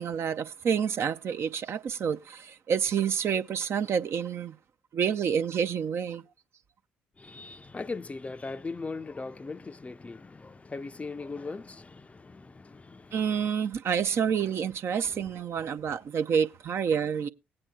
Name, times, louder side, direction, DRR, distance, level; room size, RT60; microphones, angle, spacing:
voice 1, 0.0-4.5 4.9-6.2 13.1-17.3, right 7 dB, 50° right, 0.5 m, -28 dB
voice 2, 7.2-13.5 15.0-15.2, left 3 dB, 25° left, 0.5 m, -39 dB
18.5 x 8.8 x 2.3 m
hypercardioid pair, 45°, 5 cm